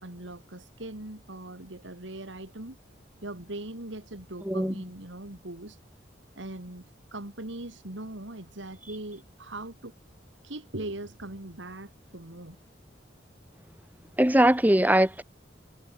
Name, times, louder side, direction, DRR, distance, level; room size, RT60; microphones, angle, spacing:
voice 1, 0.0-2.8 3.2-5.8 6.4-6.8 7.1-9.9 10.4-12.6, right 1 dB, 75° right, 2.7 m, -40 dB
voice 2, 14.2-15.2, right 1 dB, 10° right, 1.4 m, -21 dB
head